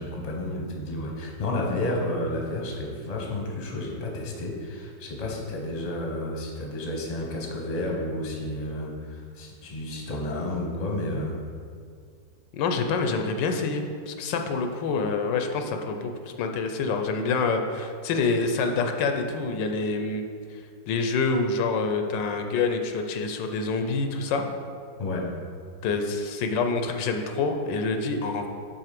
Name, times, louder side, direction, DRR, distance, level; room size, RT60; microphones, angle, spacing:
voice 1, 0.0-11.4 25.0-25.3, left 1 dB, 30° left, -1 dB, 0.8 m, -31 dB
voice 2, 12.5-16.1 16.4-20.2 20.5-20.6 20.9-24.4 25.8-28.5, left 4 dB, 85° left, 5 dB, 1.3 m, -26 dB
6.7 x 4.2 x 5.9 m, 2.2 s
omnidirectional pair, 1.9 m